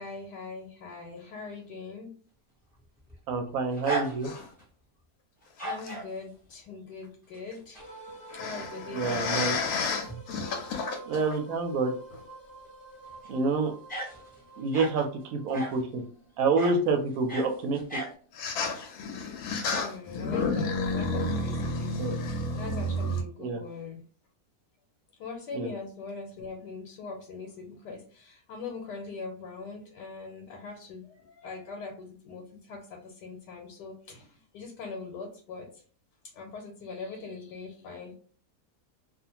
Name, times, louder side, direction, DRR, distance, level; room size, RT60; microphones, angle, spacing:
voice 1, 0.0-2.1 5.6-7.9 8.3-9.8 19.7-24.0 25.2-35.8 36.3-38.2, left 4 dB, 85° left, 1 dB, 1.2 m, -42 dB
sound 1, 2.8-4.6 5.4-6.1 7.3-7.9 8.3-8.4 9.8-9.9 10.1-10.2 13.1-13.3 13.9-15.0 15.5-15.9 16.6-16.8 17.1-18.1, right 1 dB, 10° left, 0.7 m, -36 dB
voice 2, 3.3-4.3 8.9-9.6 11.1-11.9 13.3-13.7 14.6-16.0 16.4-17.8 22.0-22.1 23.4-23.6 25.5-25.7, right 3 dB, 70° right, 4 dB, 0.9 m, -27 dB
sound 2, 4.2-4.5 5.8-5.9 8.3-11.4 12.1-12.2 15.0-15.1 18.4-23.2, left 2 dB, 70° left, 1.0 m, -31 dB
sound 3, 7.8-19.0, right 2 dB, 45° left, 0.8 m, -48 dB
2.5 x 2.4 x 2.8 m, 0.43 s
omnidirectional pair, 1.8 m